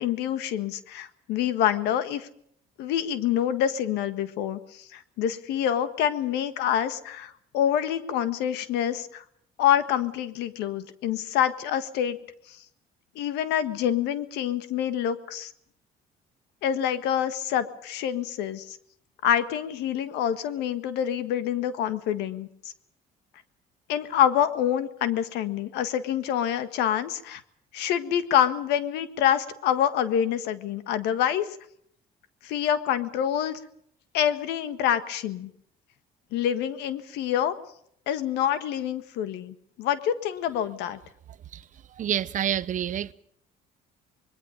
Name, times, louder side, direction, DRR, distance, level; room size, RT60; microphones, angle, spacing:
voice 1, 0.0-2.3 2.8-9.2 9.6-12.2 12.5-12.6 13.1-15.5 16.6-18.8 19.2-22.5 23.9-27.4 27.7-31.5 32.4-33.6 34.1-35.5 36.3-37.5 38.1-41.0, left 10 dB, 90° left, 1.6 m, -26 dB
voice 2, 42.0-43.1, right 10 dB, 50° right, 0.8 m, -28 dB
25.5 x 21.5 x 5.2 m
cardioid pair, 110°, 17 cm